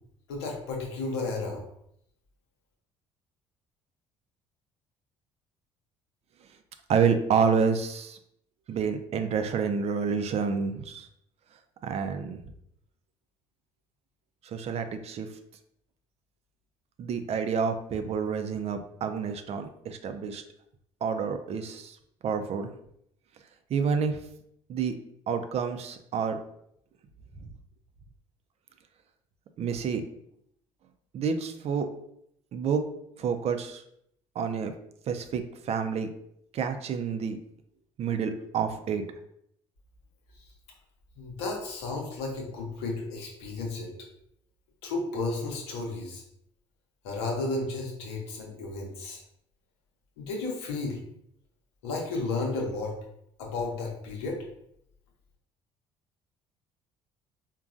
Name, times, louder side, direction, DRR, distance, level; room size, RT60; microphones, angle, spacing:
voice 1, 0.3-1.6 41.2-43.9 44.8-46.2 47.0-49.2 50.2-51.0 51.8-53.0 53.4-54.4, left 3 dB, 85° left, 0 dB, 0.8 m, -33 dB
voice 2, 6.9-8.2 8.7-11.1 11.8-12.4 14.5-15.3 17.0-20.4 21.0-21.9 22.2-22.7 23.7-24.2 24.7-24.9 25.3-26.4 29.6-30.0 31.1-31.9 32.5-32.8 33.2-33.8 34.4-34.7 35.1-35.4 35.7-36.1 36.5-37.4 38.0-39.0, right 6 dB, 50° right, 7 dB, 0.4 m, -28 dB
3.8 x 2.2 x 2.5 m, 0.72 s
hypercardioid pair, 60°, 14 cm